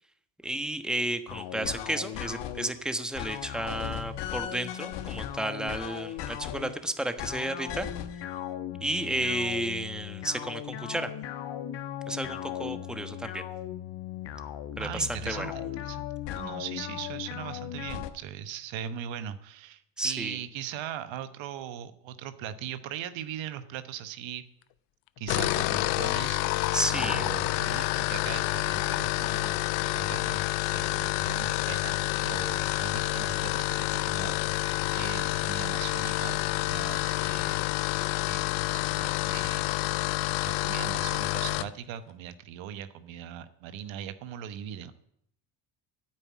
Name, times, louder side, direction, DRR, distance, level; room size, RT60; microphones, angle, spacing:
voice 1, 0.4-7.9 8.8-11.1 12.1-13.4 14.8-15.5 20.0-20.4 26.7-27.2, right 1 dB, ahead, 8 dB, 1.2 m, -32 dB
sound 1, 1.3-2.7 3.1-6.8 7.2-18.1, left 11 dB, 65° left, 1.2 m, -37 dB
voice 2, 14.8-16.1 16.3-24.4 25.2-37.6 38.3-39.8 40.4-44.9, right 9 dB, 75° right, 11 dB, 1.1 m, -40 dB
sound 2, 25.2-41.7, left 20 dB, 90° left, 0.5 m, -28 dB
9.9 x 8.8 x 8.4 m, 0.72 s
supercardioid pair, 80°, 46 cm